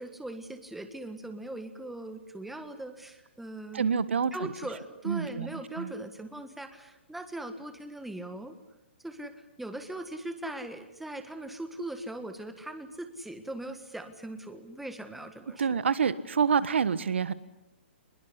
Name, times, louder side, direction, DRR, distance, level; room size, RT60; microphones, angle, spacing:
voice 1, 0.0-4.0 4.3-8.6 9.0-15.8, right 1 dB, 5° right, 8 dB, 1.5 m, -40 dB
voice 2, 3.7-4.5 5.0-5.9 15.6-17.3, right 6 dB, 80° right, 16 dB, 1.5 m, -27 dB
23.0 x 21.5 x 9.8 m, 0.91 s
hypercardioid pair, 150°, 6 cm